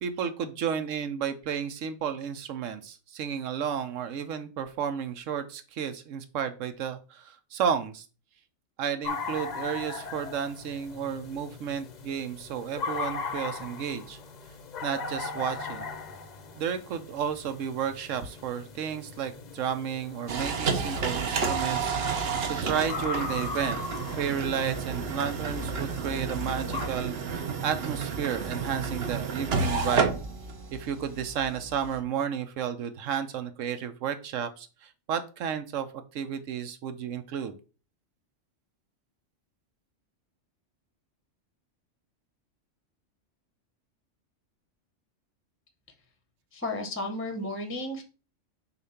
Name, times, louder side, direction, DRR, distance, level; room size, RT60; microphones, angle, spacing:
voice 1, 0.0-8.1 8.8-14.2 14.8-15.9 16.6-23.8 24.1-30.2 30.7-35.9 36.1-37.6, right 8 dB, 85° right, 9 dB, 1.0 m, -32 dB
sound 1, 9.0-26.9, left 4 dB, 45° left, 0.6 m, -39 dB
sound 2, 20.3-32.0, right 5 dB, 55° right, 1.0 m, -31 dB
voice 2, 46.5-48.0, left 1 dB, 10° left, 5 dB, 0.7 m, -33 dB
6.7 x 2.5 x 5.6 m, 0.33 s
omnidirectional pair, 1.3 m